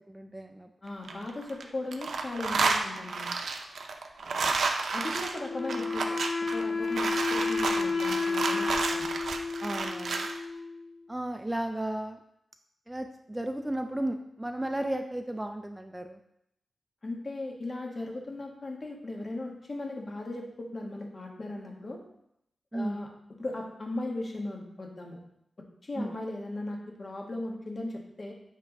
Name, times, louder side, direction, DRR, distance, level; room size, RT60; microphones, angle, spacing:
voice 1, 0.1-0.7 9.6-10.3 11.1-12.2 12.9-16.2 22.7-23.0 26.0-26.1, right 1 dB, 10° right, 5 dB, 0.4 m, -34 dB
voice 2, 0.8-3.3 4.9-6.2 6.5-9.1 17.0-22.0 22.7-23.1 23.4-25.2 25.8-28.3, left 2 dB, 45° left, 1 dB, 1.3 m, -37 dB
sound 1, 0.9-1.6 1.9-10.4, right 4 dB, 85° right, 0.6 m, -31 dB
Wind instrument woodwind instrument, 5.4-10.9, left 4 dB, 80° left, 1.3 m, -31 dB
7.4 x 3.4 x 5.2 m, 0.78 s
wide cardioid pair, 100°, 0 cm